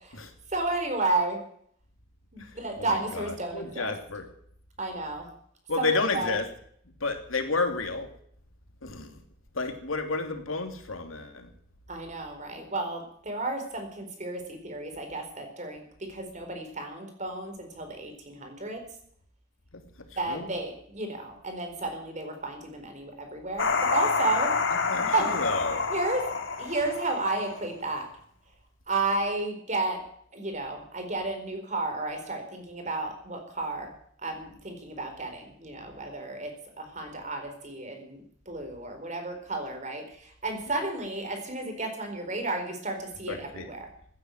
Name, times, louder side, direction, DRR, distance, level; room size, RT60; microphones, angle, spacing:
voice 1, 0.5-1.4 2.3-3.9 4.8-5.3 5.8-6.3 11.9-18.8 20.2-24.5 25.1-25.3 25.9-26.2 26.6-28.1 28.9-30.0 30.3-33.9 34.2-36.5 36.8-38.2 38.5-43.9, right 2 dB, 35° right, 5 dB, 4.4 m, -32 dB
voice 2, 2.4-4.3 5.7-6.4 7.0-8.1 8.8-9.2 9.5-11.5 19.7-19.8 20.3-20.5 24.9-25.8 43.3-43.7, left 3 dB, 90° left, 5 dB, 2.9 m, -31 dB
sound 1, 23.6-27.8, left 4 dB, 70° left, 2.0 m, -28 dB
16.0 x 9.6 x 9.3 m, 0.64 s
head